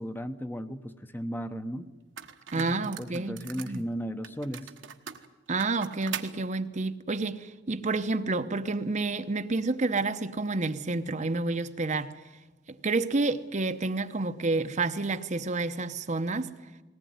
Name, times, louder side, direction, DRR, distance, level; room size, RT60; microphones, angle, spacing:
voice 1, 0.0-1.9 2.5-4.7, equal, 10° left, 0.9 m, -36 dB
sound 1, 1.5-1.6 2.2-3.8 4.2-6.3, right 8 dB, 75° right, 1.2 m, -41 dB
voice 2, 2.5-3.8 5.5-12.1 12.8-16.5, right 3 dB, 40° right, 0.8 m, -29 dB
19.5 x 18.5 x 9.5 m
head